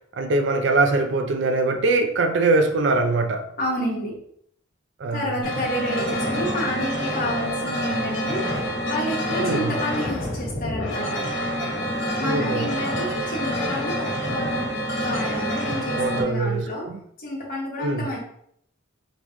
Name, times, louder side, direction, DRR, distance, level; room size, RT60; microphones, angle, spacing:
voice 1, 0.1-3.5 5.0-5.3 9.4-9.7 12.2-12.7 15.9-17.0 17.8-18.1, right 3 dB, 60° right, 0.4 m, -22 dB
voice 2, 3.6-4.1 5.1-8.5 8.8-11.2 12.1-14.7 15.0-16.9 17.2-18.2, left 1 dB, 45° left, 1.4 m, -30 dB
sound 1, 5.4-16.2, equal, 75° left, 1.4 m, -27 dB
3.7 x 3.7 x 3.1 m
head